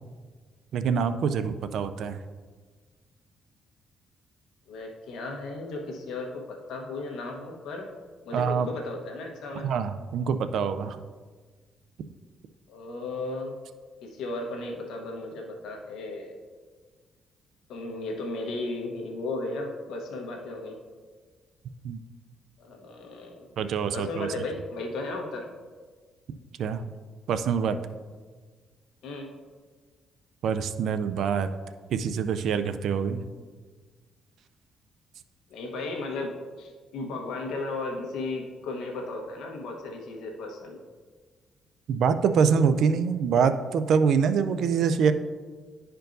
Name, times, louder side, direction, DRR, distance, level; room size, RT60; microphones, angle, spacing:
voice 1, 0.7-2.2 8.3-8.7 9.6-11.0 21.8-22.0 23.6-24.3 26.6-26.8 27.3-27.8 30.4-31.5 31.9-33.2 41.9-45.1, right 6 dB, 70° right, 10 dB, 0.4 m, -25 dB
voice 2, 4.7-7.9 8.2-9.7 12.7-13.6 14.0-16.4 17.7-20.8 22.6-23.5 23.9-25.5 29.0-29.3 35.5-40.8, left 2 dB, 85° left, 1 dB, 1.1 m, -35 dB
11.5 x 4.4 x 2.6 m, 1.5 s
cardioid pair, 90°, 0 cm